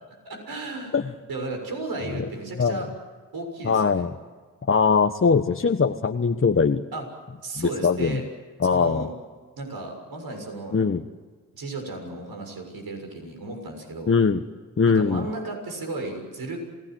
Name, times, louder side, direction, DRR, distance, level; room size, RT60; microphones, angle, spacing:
voice 1, 0.2-1.0 1.3-2.9 3.3-4.0 6.9-7.0 7.4-8.2 8.7-9.1 9.6-10.8 11.5-14.1 14.9-16.6, right 2 dB, 65° right, 3 dB, 6.7 m, -34 dB
voice 2, 3.6-4.1 4.7-6.8 7.6-8.2 8.6-9.1 10.7-11.0 14.1-14.4 14.8-15.3, left 5 dB, 30° left, 6 dB, 1.3 m, -21 dB
27.5 x 19.0 x 7.9 m, 1.5 s
hypercardioid pair, 40°, 40 cm